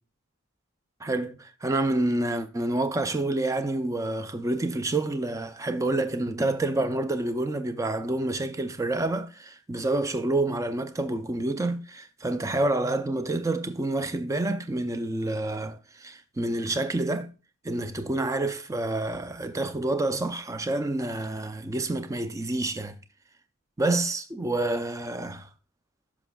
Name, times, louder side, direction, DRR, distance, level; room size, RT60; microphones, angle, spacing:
voice 1, 1.0-17.3 17.6-23.0 23.8-25.5, right 2 dB, 15° right, 0.4 m, -28 dB
11.0 x 5.9 x 2.3 m
head